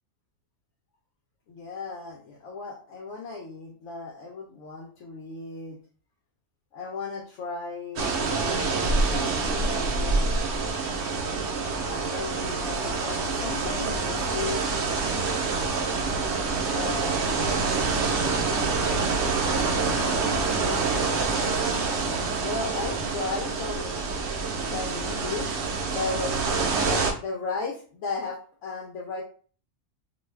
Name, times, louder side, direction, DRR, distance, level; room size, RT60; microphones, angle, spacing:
voice 1, 1.5-5.8 6.7-10.4 11.7-14.8 16.6-17.3 18.1-18.7 20.2-21.2 22.4-24.1 24.6-25.6 25.9-29.2, left 3 dB, 80° left, -1 dB, 0.9 m, -35 dB
sound 1, 8.0-27.1, right 4 dB, 70° right, 0.9 m, -26 dB
2.6 x 2.3 x 3.2 m, 0.41 s
omnidirectional pair, 1.3 m